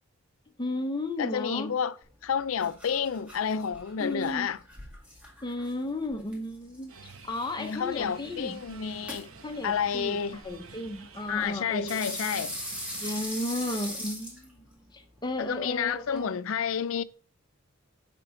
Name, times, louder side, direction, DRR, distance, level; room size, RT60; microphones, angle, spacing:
voice 1, 0.6-1.7 4.0-4.5 5.4-6.9 7.2-8.6 9.4-12.2 13.0-14.6 14.9-16.3, left 1 dB, 20° left, 0.8 m, -34 dB
voice 2, 1.2-2.0 2.2-4.6 7.6-9.3 9.6-10.4 11.3-12.5 15.4-17.0, left 7 dB, 75° left, 0.4 m, -30 dB
sound 1, 2.0-16.3, equal, 5° right, 2.1 m, -43 dB
sound 2, 6.9-13.3, right 4 dB, 80° right, 0.9 m, -50 dB
7.4 x 5.2 x 3.7 m
head